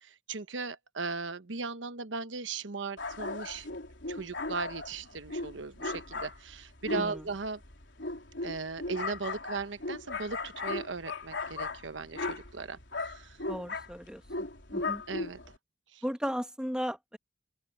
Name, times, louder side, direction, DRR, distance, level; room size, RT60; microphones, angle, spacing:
voice 1, 0.0-3.7 4.1-7.6 8.4-13.4 15.1-15.4 15.9-16.0, right 4 dB, 85° right, 1.0 m, -38 dB
sound 1, 3.0-15.6, left 3 dB, 75° left, 4.2 m, -37 dB
voice 2, 6.9-7.2 13.5-14.2 14.7-15.0 16.0-17.2, equal, 5° right, 2.1 m, -35 dB
open air
head